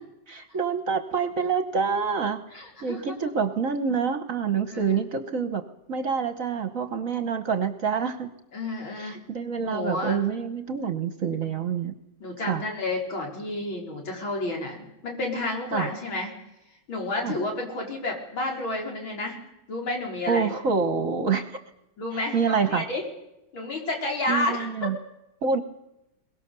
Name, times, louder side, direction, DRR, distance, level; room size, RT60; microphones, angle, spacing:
voice 1, 0.3-5.6 5.9-8.3 8.9-11.9 12.4-12.6 15.7-15.9 17.2-17.4 20.3-21.6 22.1-22.8 24.3-25.0 25.4-25.6, right 5 dB, 50° right, 9 dB, 1.2 m, -27 dB
voice 2, 2.5-3.1 4.7-5.0 8.5-9.2 9.6-10.2 12.2-16.3 16.9-19.4 19.7-20.5 22.0-23.0 23.5-24.9, left 2 dB, 80° left, 0 dB, 5.0 m, -30 dB
22.5 x 20.5 x 6.8 m, 0.89 s
omnidirectional pair, 2.2 m